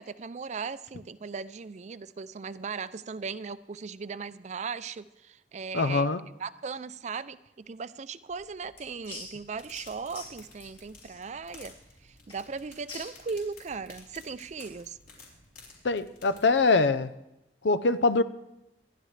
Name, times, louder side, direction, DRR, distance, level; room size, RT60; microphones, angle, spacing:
voice 1, 0.0-6.1 6.4-11.7 12.0-15.0, right 5 dB, 40° right, 0.4 m, -38 dB
voice 2, 5.7-6.2 15.8-17.1 17.6-18.2, left 3 dB, 75° left, 0.6 m, -23 dB
sound 1, 8.3-14.8, left 3 dB, 35° left, 5.1 m, -48 dB
sound 2, 9.5-16.8, left 3 dB, 55° left, 4.6 m, -54 dB
26.5 x 11.0 x 3.3 m
head